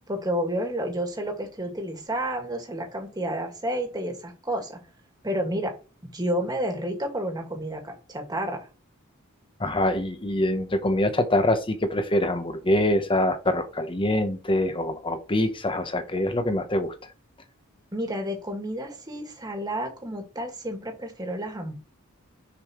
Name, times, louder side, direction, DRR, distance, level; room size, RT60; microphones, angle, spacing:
voice 1, 0.1-4.8 5.2-5.7 6.1-8.7 17.9-21.7, equal, 20° right, 1.9 m, -30 dB
voice 2, 9.6-16.9, left 1 dB, 25° left, 1.0 m, -24 dB
7.0 x 5.5 x 3.2 m
head